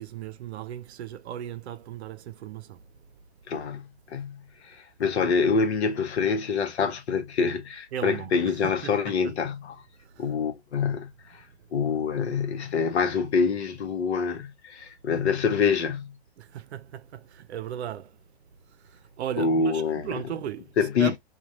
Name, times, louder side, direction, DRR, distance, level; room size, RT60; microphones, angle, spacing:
voice 1, 0.0-2.8 5.0-5.2 7.9-9.1 16.4-18.2 18.9-21.2, right 10 dB, 75° right, 0.6 m, -36 dB
voice 2, 3.5-9.8 10.2-11.4 11.7-16.1 19.4-20.2 20.8-21.2, left 5 dB, 75° left, 1.0 m, -26 dB
3.1 x 2.3 x 2.6 m
hypercardioid pair, 165°, 33 cm